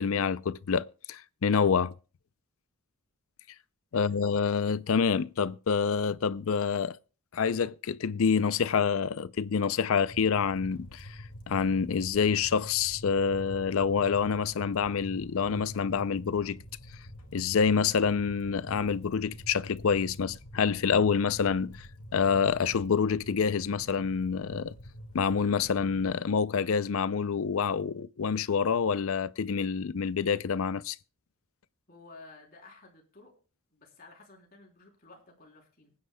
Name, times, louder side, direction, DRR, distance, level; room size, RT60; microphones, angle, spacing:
voice 1, 0.0-1.9 3.9-7.0 7.3-11.2 11.5-16.6 17.3-21.9 22.1-24.7 25.1-31.0, left 6 dB, 70° left, 0.5 m, -27 dB
voice 2, 3.9-4.4 31.9-33.3 33.7-35.9, left 3 dB, 45° left, 3.4 m, -53 dB
sound 1, 10.1-26.2, equal, 85° left, 2.2 m, -47 dB
25.0 x 9.6 x 2.2 m
head